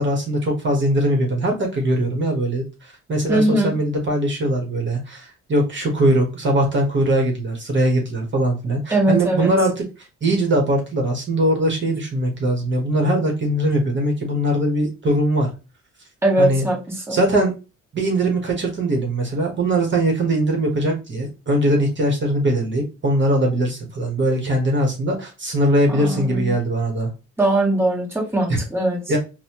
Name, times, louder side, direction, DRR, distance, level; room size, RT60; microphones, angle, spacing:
voice 1, 0.0-9.8 10.2-15.5 16.4-16.6 17.1-17.5 17.9-27.1 28.5-28.6 29.1-29.2, right 1 dB, 40° right, 1 dB, 1.1 m, -21 dB
voice 2, 3.3-3.7 8.9-9.5 16.2-17.2 25.9-26.5 27.4-29.0, right 1 dB, 10° right, -1 dB, 1.2 m, -20 dB
4.0 x 2.2 x 2.9 m, 0.30 s
cardioid pair, 90°, 30 cm